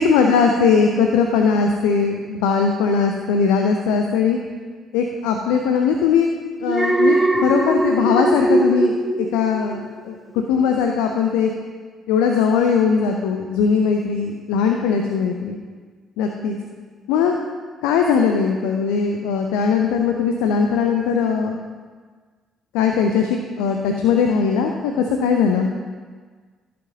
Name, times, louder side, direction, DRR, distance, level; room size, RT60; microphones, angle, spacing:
voice 1, 0.0-4.4 4.9-6.3 6.6-9.8 10.0-11.5 12.1-15.6 16.2-16.6 17.1-17.4 17.8-21.6 22.7-25.7, left 6 dB, 70° left, 3 dB, 0.6 m, -19 dB
Alarm, 6.7-10.0 10.4-10.7, right 1 dB, 15° right, 0.9 m, -20 dB
14.5 x 7.7 x 2.8 m, 1.5 s
figure-of-eight pair, 45°, 0 cm